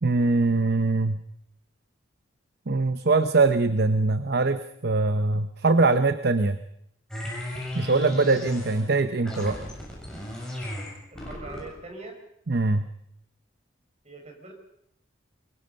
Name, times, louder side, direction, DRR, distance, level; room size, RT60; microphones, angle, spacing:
voice 1, 0.0-1.2 2.7-6.6 7.7-9.6 12.5-12.9, right 3 dB, 50° right, 10 dB, 0.8 m, -22 dB
sound 1, 7.1-8.9 9.2-11.8, left 1 dB, 5° left, 7.3 m, -35 dB
voice 2, 11.1-12.2 14.0-14.5, right 2 dB, 35° right, 2 dB, 5.7 m, -42 dB
24.5 x 22.5 x 5.5 m, 0.75 s
head